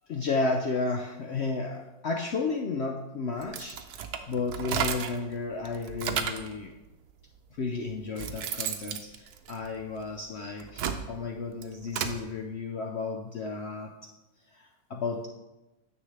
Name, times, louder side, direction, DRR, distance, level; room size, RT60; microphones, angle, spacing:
voice 1, 0.1-3.9 4.3-6.8 7.5-14.1 14.5-15.3, left 3 dB, 70° left, 2 dB, 0.6 m, -33 dB
sound 1, 3.4-5.3 5.7-6.5 7.4-7.5 7.9-10.1 10.5-12.2, right 8 dB, 70° right, 1.1 m, -33 dB
9.9 x 6.9 x 3.3 m, 1.0 s
omnidirectional pair, 1.8 m